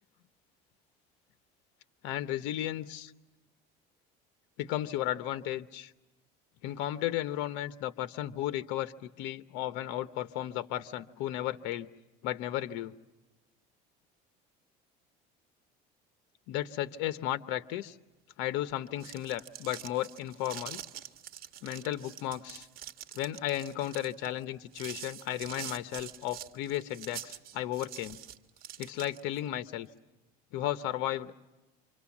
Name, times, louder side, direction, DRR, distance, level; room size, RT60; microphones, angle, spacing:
voice 1, 2.0-3.1 4.6-5.9 6.6-11.9 12.2-12.9 16.5-18.0 18.4-20.8 21.6-22.7 23.1-28.2 28.8-29.9 30.5-31.4, left 13 dB, 75° left, 12 dB, 0.9 m, -34 dB
sound 1, 18.8-29.4, right 11 dB, 55° right, 1.8 m, -45 dB
28.0 x 26.0 x 7.2 m, 1.1 s
cardioid pair, 120°, 18 cm